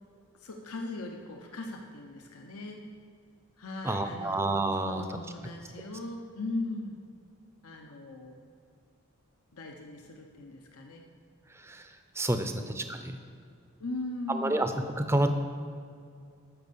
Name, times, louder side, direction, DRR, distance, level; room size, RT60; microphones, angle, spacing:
voice 1, 0.4-2.9 3.6-7.0 7.6-8.4 9.5-11.0 12.3-13.1 13.8-14.8, left 2 dB, 85° left, 2 dB, 1.0 m, -39 dB
voice 2, 3.8-5.0 11.6-11.9 12.2-13.2 14.3-14.7 15.0-15.3, right 2 dB, 10° right, 7 dB, 0.5 m, -29 dB
13.0 x 5.5 x 6.9 m, 2.3 s
head